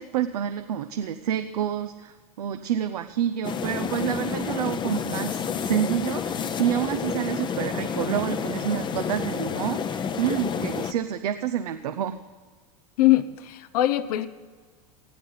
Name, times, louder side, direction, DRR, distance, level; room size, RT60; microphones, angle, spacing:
voice 1, 0.0-12.2, right 10 dB, 90° right, 8 dB, 0.7 m, -28 dB
sound 1, 3.4-10.9, left 7 dB, 25° left, 0.7 m, -30 dB
voice 2, 13.0-14.3, left 15 dB, 80° left, 12 dB, 0.9 m, -22 dB
19.0 x 13.5 x 4.0 m, 1.5 s
supercardioid pair, 120°, 19 cm